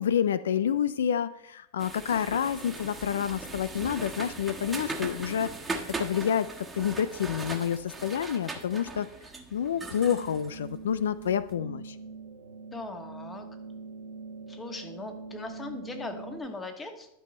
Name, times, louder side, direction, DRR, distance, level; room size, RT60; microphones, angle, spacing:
voice 1, 0.0-5.5 6.0-6.5 6.7-9.1 9.5-12.0, left 8 dB, 85° left, 15 dB, 0.3 m, -28 dB
sound 1, 1.8-11.3, right 3 dB, 10° right, 1.4 m, -39 dB
sound 2, 9.9-16.4, right 4 dB, 85° right, 1.3 m, -43 dB
voice 2, 12.7-13.4 14.5-17.1, left 2 dB, 15° left, 5 dB, 1.5 m, -39 dB
12.0 x 5.5 x 4.3 m, 0.83 s
hypercardioid pair, 110°, 0 cm